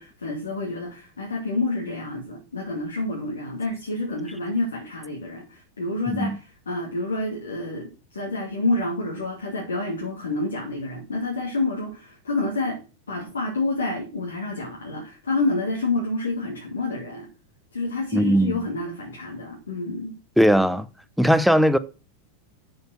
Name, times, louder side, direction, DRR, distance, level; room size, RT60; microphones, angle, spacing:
voice 1, 0.0-12.8 13.1-17.3 17.7-20.1, left 2 dB, 70° left, 2.6 m, -28 dB
voice 2, 6.1-6.4 18.1-18.6 20.4-20.9 21.2-21.8, equal, ahead, 0.8 m, -19 dB
7.8 x 7.0 x 6.1 m
figure-of-eight pair, 90°, 0 cm